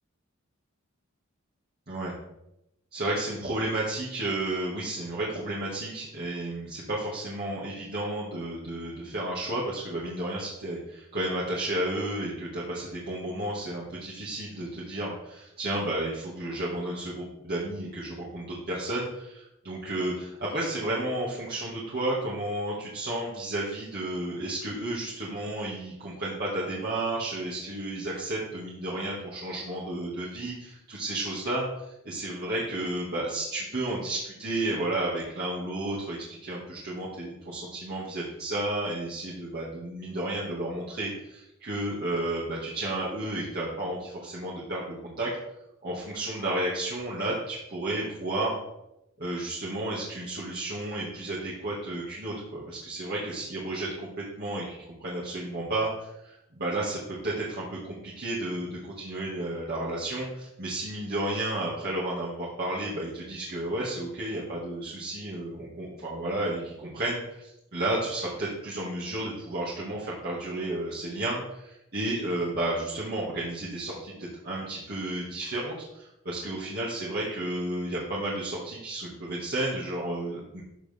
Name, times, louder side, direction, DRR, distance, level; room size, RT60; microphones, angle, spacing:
voice 1, 2.9-45.3 45.8-48.6 49.2-80.6, right 1 dB, 50° right, -6 dB, 2.2 m, -32 dB
13.5 x 6.4 x 3.6 m, 0.85 s
head